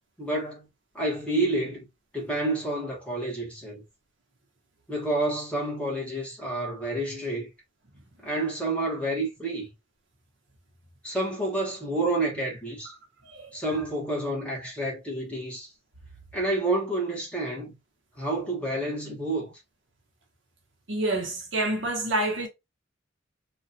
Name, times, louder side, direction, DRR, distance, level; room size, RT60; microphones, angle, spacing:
voice 1, 0.2-0.7 0.9-1.9 2.1-3.8 4.9-7.5 8.2-9.7 11.0-12.9 13.5-15.7 16.3-17.8 18.2-19.6, right 2 dB, 5° left, 1.1 m, -29 dB
voice 2, 20.9-22.5, right 2 dB, 70° right, 1.1 m, -28 dB
3.1 x 2.4 x 2.6 m
head